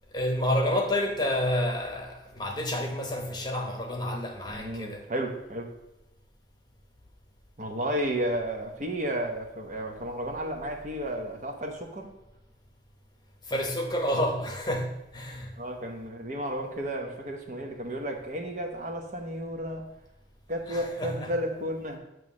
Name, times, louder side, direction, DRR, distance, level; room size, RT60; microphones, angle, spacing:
voice 1, 0.1-5.1 13.4-15.5 20.7-21.1, left 1 dB, 20° left, 2 dB, 1.0 m, -29 dB
voice 2, 4.5-5.7 7.6-12.1 15.6-19.9 20.5-22.0, right 1 dB, 40° right, 2 dB, 1.0 m, -32 dB
9.1 x 3.1 x 6.3 m, 0.92 s
head